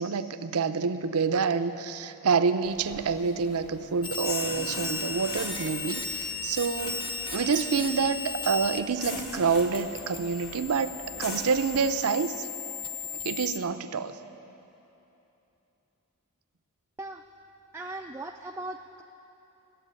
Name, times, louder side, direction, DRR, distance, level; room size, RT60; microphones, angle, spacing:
voice 1, 0.0-12.5 13.1-14.2, right 5 dB, 75° right, 11 dB, 0.6 m, -27 dB
sound 1, 2.6-11.8, left 2 dB, 50° left, 1.6 m, -41 dB
sound 2, 4.0-8.8 9.1-13.6, left 4 dB, 25° left, 0.9 m, -36 dB
voice 2, 17.7-19.0, right 2 dB, 10° right, 3 dB, 0.3 m, -38 dB
14.5 x 7.6 x 9.5 m, 3.0 s
head